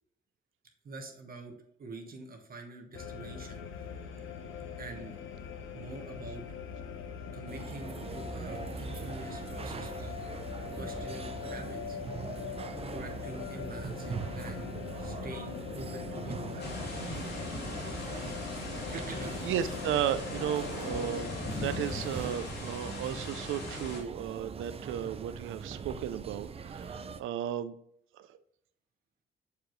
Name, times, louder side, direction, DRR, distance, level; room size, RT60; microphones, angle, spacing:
voice 1, 0.8-1.5 1.8-3.6 4.8-5.2 5.7-6.4 7.3-10.3 10.8-12.0 12.9-16.8 18.9-19.4, right 2 dB, 45° right, 3 dB, 1.2 m, -45 dB
sound 1, 2.9-22.4, left 7 dB, 75° left, 0.9 m, -42 dB
sound 2, 7.5-27.2, right 6 dB, 30° right, 0.5 m, -42 dB
sound 3, 16.6-24.0, left 2 dB, 55° left, 2.3 m, -40 dB
voice 2, 19.4-27.7, right 10 dB, 80° right, 14 dB, 0.5 m, -34 dB
6.8 x 4.8 x 3.1 m, 0.70 s
cardioid pair, 95°, 20 cm